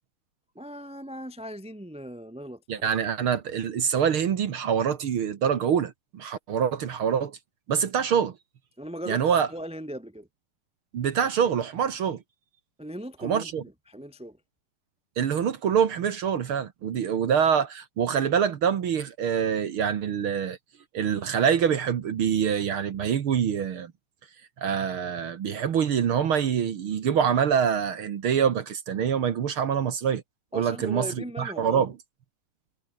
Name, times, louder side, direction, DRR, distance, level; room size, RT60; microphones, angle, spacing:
voice 1, 0.5-2.6 8.8-10.3 12.8-14.4 30.5-31.9, equal, ahead, 1.6 m, -38 dB
voice 2, 2.7-7.4 7.7-8.3 9.1-9.5 10.9-12.2 13.2-13.6 15.2-20.6 20.9-23.9 24.6-30.2 30.5-31.9, right 8 dB, 55° right, 1.5 m, -25 dB
omnidirectional pair, 4.2 m